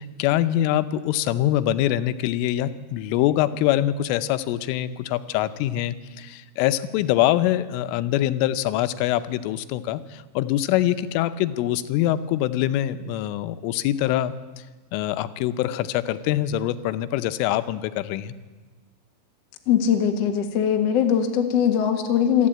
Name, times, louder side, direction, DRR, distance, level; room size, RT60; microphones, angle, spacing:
voice 1, 0.0-14.3 14.9-18.4, left 13 dB, 90° left, 12 dB, 3.3 m, -24 dB
voice 2, 19.7-22.5, left 8 dB, 65° left, 4 dB, 1.6 m, -21 dB
26.5 x 11.5 x 8.7 m, 1.3 s
omnidirectional pair, 5.6 m